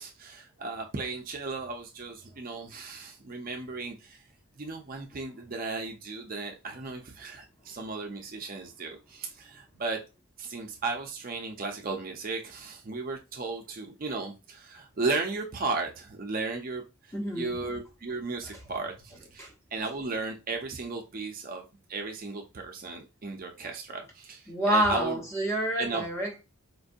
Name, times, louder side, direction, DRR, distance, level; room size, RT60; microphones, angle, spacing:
voice 1, 0.0-4.2 4.6-10.0 10.4-25.2 25.8-26.1, right 3 dB, 40° right, 0.5 m, -35 dB
voice 2, 17.1-17.6 19.4-19.5 24.5-26.4, right 1 dB, 15° left, 1.1 m, -28 dB
4.4 x 2.5 x 2.5 m
head